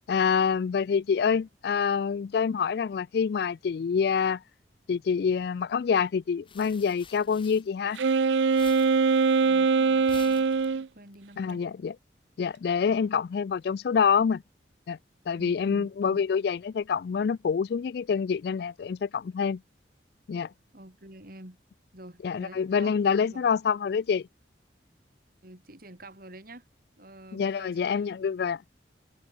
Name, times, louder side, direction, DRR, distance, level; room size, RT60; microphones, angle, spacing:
voice 1, 0.1-4.4 4.9-8.0 11.4-11.9 12.4-14.4 14.9-15.0 15.3-19.6 20.3-20.5 22.2-24.3 27.3-28.6, left 6 dB, 60° left, 0.3 m, -26 dB
sound 1, 6.2-8.2 8.4-11.1, left 6 dB, 30° left, 2.4 m, -50 dB
Wind instrument woodwind instrument, 8.0-10.9, right 5 dB, 75° right, 0.5 m, -22 dB
voice 2, 9.4-10.5 10.7-11.6 15.4-16.2 20.7-21.6 21.9-23.0 23.3-23.5 25.4-26.7 27.0-28.1, right 1 dB, 50° right, 4.8 m, -48 dB
head